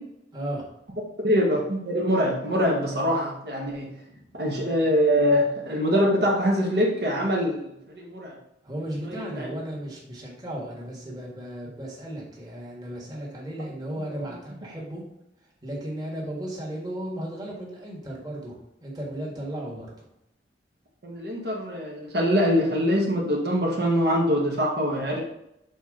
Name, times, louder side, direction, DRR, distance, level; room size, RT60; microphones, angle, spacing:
voice 1, 0.3-0.7 4.1-4.4 8.6-15.0 15.6-20.1, right 1 dB, 20° right, -3 dB, 1.6 m, -35 dB
voice 2, 1.2-3.9 4.4-8.3 9.0-9.5 21.0-25.2, equal, 60° right, -2 dB, 1.3 m, -24 dB
7.0 x 4.3 x 3.7 m, 0.82 s
head